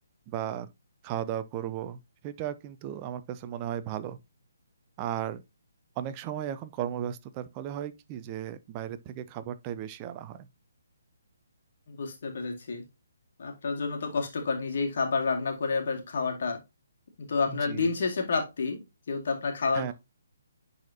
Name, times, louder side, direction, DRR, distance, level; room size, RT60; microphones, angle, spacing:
voice 1, 0.3-0.7 1.0-4.2 5.0-5.4 6.0-10.5 17.5-18.0 19.7-19.9, right 10 dB, 25° right, 0.5 m, -35 dB
voice 2, 11.9-12.8 13.4-16.6 17.2-18.8 19.1-19.9, left 4 dB, 50° left, 2.0 m, -29 dB
10.5 x 4.2 x 2.7 m
figure-of-eight pair, 135°, 0 cm